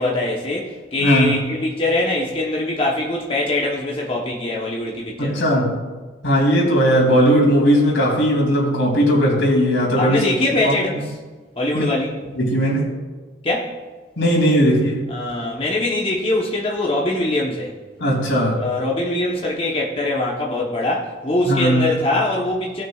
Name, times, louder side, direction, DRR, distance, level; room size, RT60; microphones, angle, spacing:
voice 1, 0.0-5.5 10.0-11.1 11.6-12.1 13.4-13.7 15.1-17.8 18.6-22.8, left 2 dB, 30° left, -3 dB, 0.9 m, -22 dB
voice 2, 1.0-1.4 5.2-5.7 6.2-10.2 10.6-10.7 11.7-11.9 12.4-12.9 14.2-15.0 18.0-18.6 21.5-21.9, equal, 85° left, -2 dB, 3.0 m, -17 dB
17.5 x 6.3 x 2.4 m, 1.3 s
head